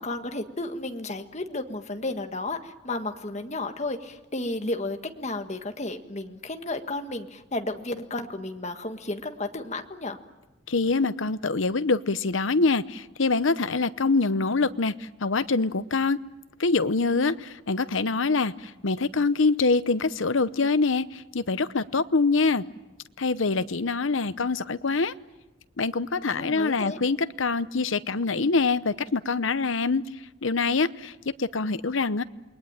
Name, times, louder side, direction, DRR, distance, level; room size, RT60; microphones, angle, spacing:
voice 1, 0.0-10.2 26.3-27.0, left 2 dB, 35° left, 6 dB, 1.7 m, -33 dB
voice 2, 10.7-16.2 16.6-22.6 23.2-25.1 25.8-30.0 30.4-31.1 31.4-32.2, left 3 dB, 75° left, 14 dB, 0.9 m, -25 dB
28.5 x 22.0 x 8.9 m, 1.0 s
head